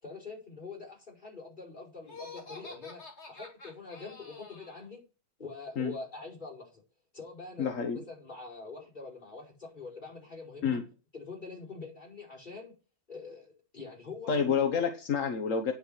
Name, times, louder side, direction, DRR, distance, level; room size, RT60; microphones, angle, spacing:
voice 1, 0.0-5.0 5.4-6.8 7.1-10.8 11.1-12.8 13.1-14.6, left 4 dB, 40° left, -2 dB, 5.4 m, -45 dB
Laughter, 2.0-4.9, left 3 dB, 60° left, 2.8 m, -48 dB
voice 2, 7.6-8.0 10.6-10.8 14.3-15.7, left 6 dB, 85° left, 6 dB, 1.5 m, -28 dB
9.7 x 6.4 x 7.3 m, 0.33 s
omnidirectional pair, 1.3 m